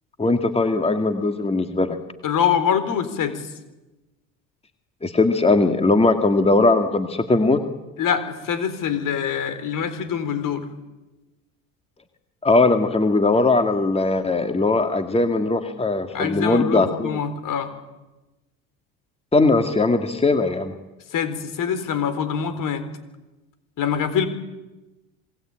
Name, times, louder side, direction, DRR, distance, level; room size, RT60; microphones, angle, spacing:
voice 1, 0.2-2.0 5.0-7.6 12.4-17.2 19.3-20.7, left 3 dB, 15° left, 7 dB, 2.3 m, -19 dB
voice 2, 2.2-3.4 8.0-10.6 16.1-17.7 21.1-22.8 23.8-24.3, left 7 dB, 55° left, 11 dB, 4.2 m, -24 dB
27.0 x 20.5 x 9.0 m, 1.1 s
hypercardioid pair, 80°, 38 cm